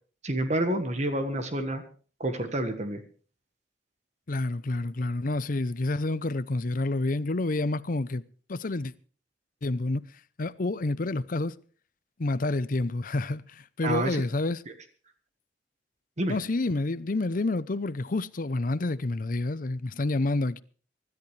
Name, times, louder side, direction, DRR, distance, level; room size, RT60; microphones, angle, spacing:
voice 1, 0.2-1.8 2.2-3.0 13.8-14.2 16.2-16.4, right 1 dB, 40° right, 1.5 m, -28 dB
voice 2, 4.3-8.2 8.5-8.9 9.6-10.0 10.4-11.5 12.2-14.6 16.3-20.6, left 2 dB, 50° left, 0.7 m, -28 dB
25.0 x 13.0 x 3.3 m
head